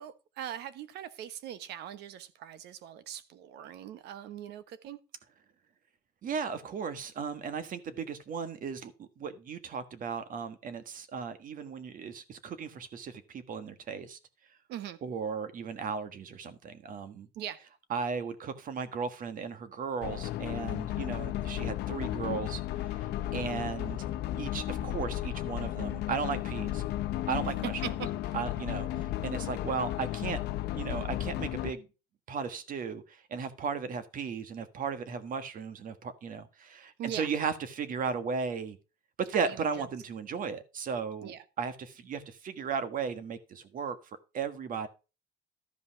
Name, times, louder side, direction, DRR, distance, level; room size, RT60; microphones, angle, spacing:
voice 1, 0.0-5.0 14.7-15.0 17.3-17.6 27.4-27.5 27.8-27.9 37.0-37.3 39.5-39.9 41.2-41.4, right 10 dB, 80° right, 1.2 m, -41 dB
voice 2, 6.2-14.2 15.0-17.3 17.9-23.0 23.3-24.0 24.4-26.8 27.3-27.8 28.3-30.4 30.7-31.9 32.3-38.8 39.2-44.0 44.3-44.9, right 6 dB, 55° right, 1.5 m, -36 dB
sound 1, 20.0-31.7, left 13 dB, 80° left, 0.8 m, -34 dB
12.5 x 5.3 x 5.8 m
cardioid pair, 110°, 17 cm